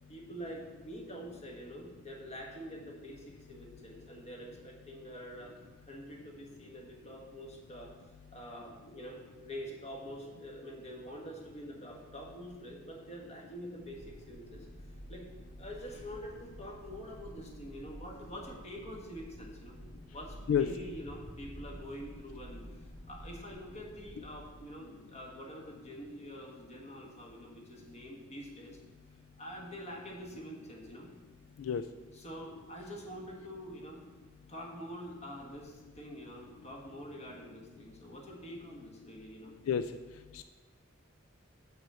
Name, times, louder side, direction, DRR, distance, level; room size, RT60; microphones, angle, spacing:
voice 1, 0.1-5.5 5.8-7.9 8.3-14.7 15.1-15.3 15.6-19.8 20.1-28.8 29.4-31.1 32.1-34.0 34.5-39.5, equal, 35° left, 0 dB, 1.5 m, -46 dB
sound 1, 13.8-24.7, equal, 50° left, 2.2 m, -50 dB
voice 2, 20.5-20.7 31.7-31.8 39.7-39.8 40.4-40.5, left 8 dB, 80° left, 10 dB, 0.3 m, -27 dB
7.5 x 6.1 x 5.6 m, 1.3 s
head